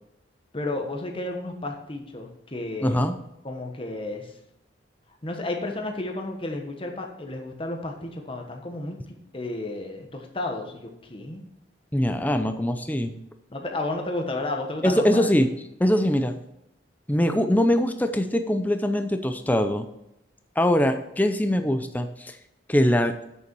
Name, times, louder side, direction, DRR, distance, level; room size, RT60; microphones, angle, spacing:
voice 1, 0.5-3.0 3.4-4.3 5.2-9.0 9.3-11.4 13.5-15.3, left 2 dB, 30° left, 3 dB, 1.2 m, -32 dB
voice 2, 2.8-3.1 11.9-13.1 14.8-15.5 15.8-16.3 17.1-19.9 20.6-22.4 22.7-23.1, left 1 dB, 10° left, 7 dB, 0.5 m, -22 dB
8.3 x 6.7 x 4.6 m, 0.85 s
head